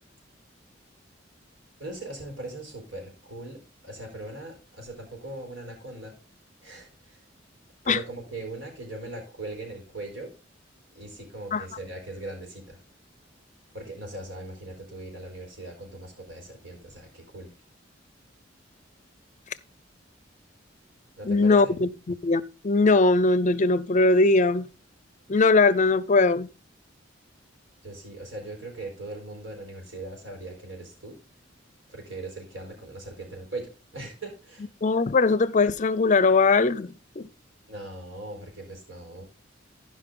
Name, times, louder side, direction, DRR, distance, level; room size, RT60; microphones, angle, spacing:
voice 1, 1.8-6.2 6.6-7.2 7.8-10.3 10.9-12.8 13.7-17.5 21.2-21.7 27.8-31.2 31.9-34.7 37.7-39.2, right 2 dB, 80° right, 4.3 m, -39 dB
voice 2, 21.2-24.7 25.3-26.5 34.8-37.3, left 3 dB, 40° left, 0.5 m, -21 dB
15.0 x 5.2 x 3.8 m
head